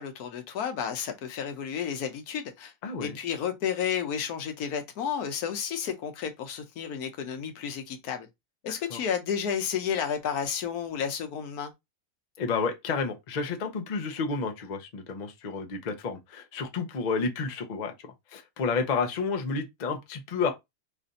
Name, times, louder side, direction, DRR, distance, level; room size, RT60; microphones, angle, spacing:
voice 1, 0.0-2.7 3.0-8.3 8.6-11.7, left 7 dB, 85° left, 1.3 m, -32 dB
voice 2, 2.8-3.2 8.7-9.0 12.4-20.5, left 4 dB, 45° left, 0.5 m, -31 dB
3.3 x 2.5 x 3.9 m
omnidirectional pair, 1.6 m